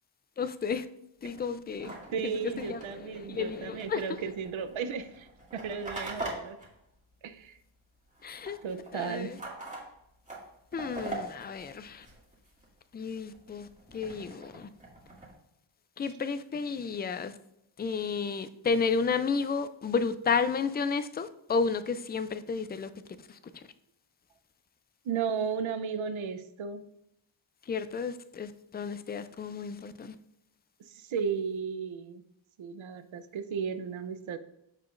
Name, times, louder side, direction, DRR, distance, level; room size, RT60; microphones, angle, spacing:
voice 1, 0.4-0.9 1.2-2.0 2.2-2.3 2.6-2.8 3.2-4.0 8.2-8.6 8.9-9.4 10.7-12.1 12.9-13.7 13.9-14.7 16.0-17.3 17.8-22.9 23.3-23.4 27.7-30.1, left 5 dB, 20° left, 0.3 m, -32 dB
sound 1, 1.2-7.8 8.0-12.7 13.1-15.3, right 2 dB, 15° right, 2.2 m, -44 dB
voice 2, 1.9-6.6 7.2-7.6 8.6-9.3 25.0-26.8 30.9-32.2 32.6-34.4, right 6 dB, 70° right, 0.8 m, -34 dB
14.5 x 4.8 x 2.5 m
wide cardioid pair, 120°, 49 cm